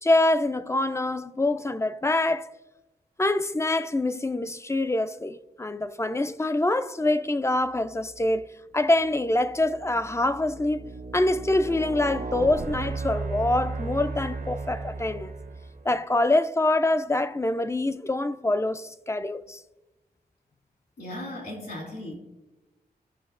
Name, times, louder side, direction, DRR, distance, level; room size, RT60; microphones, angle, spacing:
voice 1, 0.0-2.5 3.2-8.5 8.7-15.3 15.9-19.6, left 2 dB, 15° left, 0.4 m, -25 dB
sound 1, 8.1-8.4 9.0-15.9, right 3 dB, 55° right, 0.6 m, -35 dB
voice 2, 21.0-22.2, left 1 dB, 65° left, 2.7 m, -36 dB
16.5 x 5.7 x 2.5 m
wide cardioid pair, 85°, 17 cm